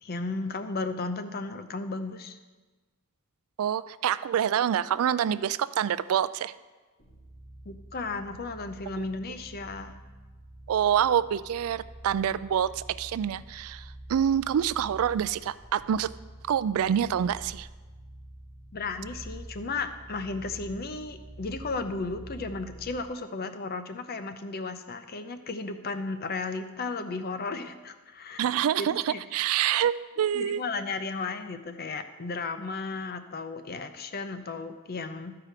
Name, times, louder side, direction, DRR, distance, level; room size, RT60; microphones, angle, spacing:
voice 1, 0.0-2.4 7.7-10.0 18.7-28.4 28.8-29.2 30.3-35.3, left 3 dB, 45° left, 10 dB, 0.6 m, -34 dB
voice 2, 3.6-6.5 9.0-9.1 10.7-13.8 14.1-16.1 16.5-17.7 28.4-30.6, right 9 dB, 65° right, 17 dB, 0.3 m, -26 dB
sound 1, 7.0-23.1, right 1 dB, 70° left, 2.6 m, -47 dB
13.5 x 4.8 x 5.0 m, 1.3 s
head